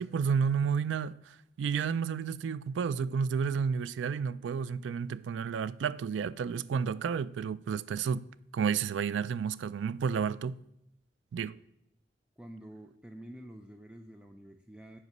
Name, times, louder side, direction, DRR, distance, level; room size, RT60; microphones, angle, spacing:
voice 1, 0.0-8.3 8.5-10.6 11.3-11.6, right 6 dB, 85° right, 0.3 m, -31 dB
voice 2, 12.4-15.0, right 1 dB, 5° right, 0.3 m, -48 dB
8.0 x 4.9 x 5.3 m
head